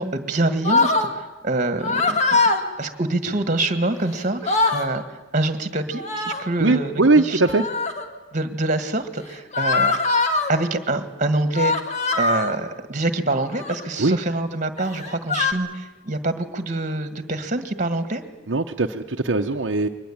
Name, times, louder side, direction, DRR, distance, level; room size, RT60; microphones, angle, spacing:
voice 1, 0.0-2.2 2.8-5.0 5.3-7.4 8.3-9.9 10.5-11.7 12.2-18.2, right 2 dB, 40° right, 9 dB, 1.8 m, -25 dB
sound 1, 0.6-1.1 1.8-2.6 3.9-4.0 4.3-4.9 5.9-6.5 7.4-8.1 9.5-10.5 11.5-12.6 13.4-13.8 14.8-15.5, left 3 dB, 35° left, 1.9 m, -22 dB
voice 2, 6.6-7.6 14.0-14.2 18.5-19.9, right 3 dB, 70° right, 3 dB, 0.9 m, -20 dB
23.5 x 20.0 x 8.8 m, 1.1 s
head